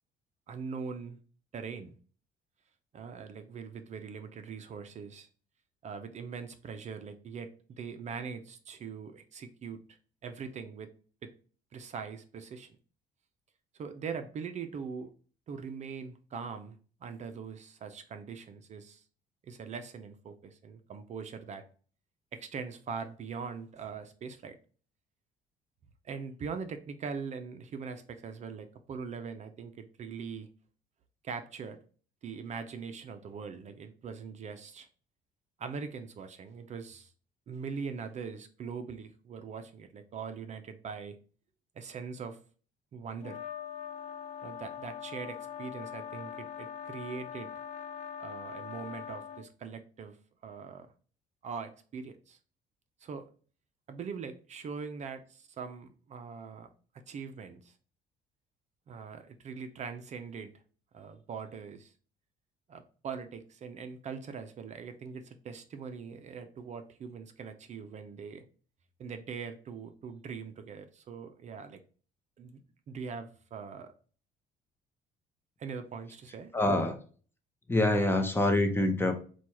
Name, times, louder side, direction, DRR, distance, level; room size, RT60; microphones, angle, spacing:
voice 1, 0.5-1.2 1.5-2.0 2.9-5.3 5.8-10.0 10.2-10.9 11.2-11.3 11.7-12.8 13.8-15.1 15.5-19.0 19.4-21.6 22.3-24.6 26.0-30.5 31.2-31.8 32.2-34.9 35.6-37.1 37.5-41.2 41.8-42.4 42.9-43.4 44.4-47.5 48.2-50.2 50.4-50.9 51.4-52.4 53.0-53.3 53.9-56.7 57.1-57.7 58.9-60.5 60.9-61.9 62.7-68.4 69.0-71.8 72.4-72.6 72.9-73.9 75.6-76.5, right 5 dB, 45° right, 8 dB, 0.5 m, -42 dB
sound 1, 43.2-49.5, left 8 dB, 45° left, 0.4 m, -42 dB
voice 2, 76.5-77.0 77.7-79.2, left 1 dB, 15° left, 5 dB, 0.7 m, -26 dB
4.4 x 2.3 x 4.4 m, 0.41 s
cardioid pair, 110°, 17 cm